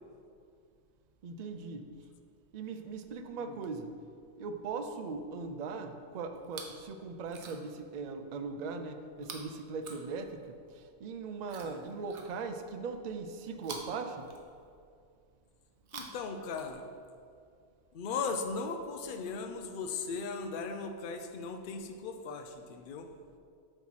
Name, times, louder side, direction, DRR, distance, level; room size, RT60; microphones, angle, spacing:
voice 1, 1.2-1.9 2.5-4.0 4.4-14.3, right 4 dB, 55° right, 7 dB, 0.5 m, -39 dB
Chewing mastication, 6.4-6.9 7.2-7.8 9.2-10.6 11.4-12.7 13.6-14.9 15.7-17.1 18.1-18.2, right 4 dB, 75° right, 1.1 m, -48 dB
voice 2, 15.9-16.8 17.9-23.1, left 4 dB, 55° left, 6 dB, 0.7 m, -38 dB
7.7 x 3.1 x 5.6 m, 2.3 s
omnidirectional pair, 1.2 m